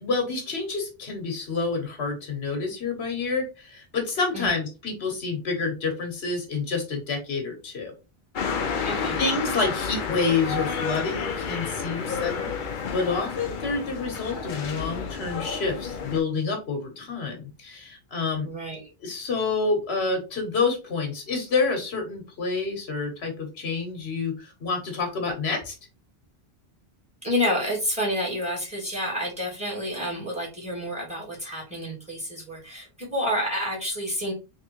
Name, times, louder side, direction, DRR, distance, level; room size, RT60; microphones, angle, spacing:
voice 1, 0.0-7.9 8.8-18.5 19.0-25.7, left 4 dB, 85° left, 3 dB, 1.3 m, -28 dB
sound 1, 8.4-16.2, left 5 dB, 55° left, 0.8 m, -30 dB
voice 2, 8.9-9.2 18.4-18.9 27.2-34.3, equal, 5° right, -3 dB, 2.0 m, -29 dB
3.5 x 3.2 x 2.9 m, 0.30 s
omnidirectional pair, 1.0 m